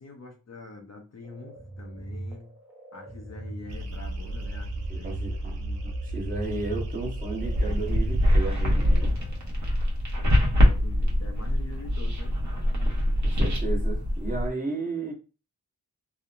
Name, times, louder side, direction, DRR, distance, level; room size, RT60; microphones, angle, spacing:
voice 1, 0.0-2.6 2.9-5.2 10.6-12.4, left 3 dB, 45° left, 3 dB, 0.6 m, -45 dB
sound 1, 1.2-9.9, right 1 dB, 5° right, 0.6 m, -41 dB
sound 2, 3.7-9.1, right 1 dB, 90° right, 0.5 m, -34 dB
voice 2, 4.9-9.1 13.2-15.1, right 3 dB, 20° right, -2 dB, 1.0 m, -34 dB
sound 3, 7.4-14.5, equal, 50° right, 1.0 m, -24 dB
2.8 x 2.0 x 2.4 m, 0.32 s
wide cardioid pair, 70°, 38 cm